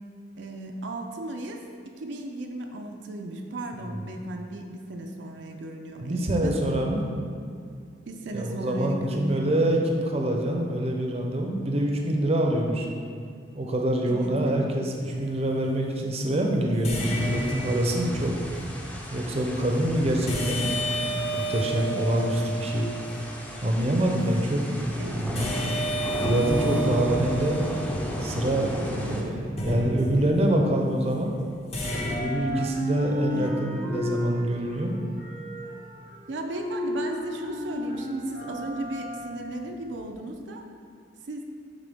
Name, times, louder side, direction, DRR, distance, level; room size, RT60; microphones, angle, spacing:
voice 1, 0.4-6.6 8.1-9.5 14.0-14.7 25.0-25.3 29.0-29.3 33.3-33.5 36.3-40.6 41.3-41.4, right 1 dB, 80° right, 2 dB, 0.5 m, -35 dB
voice 2, 6.0-7.0 8.3-12.9 13.5-18.3 19.1-22.9 23.6-25.7 26.2-27.6 28.2-31.3 32.2-35.0, right 1 dB, 35° right, 1 dB, 0.6 m, -26 dB
sound 1, 15.1-15.4 16.8-18.4 20.3-23.3 25.3-28.7 29.6-30.6 31.7-32.2, right 1 dB, 35° left, 0.9 m, -31 dB
sound 2, 17.0-29.2, equal, 10° left, 0.6 m, -35 dB
sound 3, 30.7-31.7 31.9-40.1, left 1 dB, 75° left, 1.4 m, -34 dB
9.0 x 3.7 x 3.5 m, 2.3 s
head